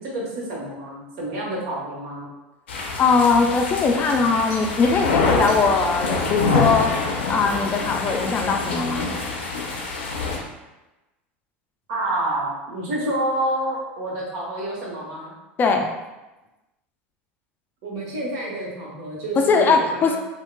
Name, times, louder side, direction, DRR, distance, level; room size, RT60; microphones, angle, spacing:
voice 1, 0.0-2.3 4.5-4.6 11.9-15.3 17.8-20.2, right 1 dB, 65° right, -4 dB, 1.1 m, -28 dB
sound 1, 2.7-10.4, left 3 dB, 90° left, 0.5 m, -25 dB
voice 2, 3.0-6.9 7.3-9.1 15.6-15.9 19.5-20.1, left 4 dB, 30° left, 4 dB, 0.3 m, -20 dB
3.5 x 2.3 x 2.2 m, 1.0 s
hypercardioid pair, 95°, 6 cm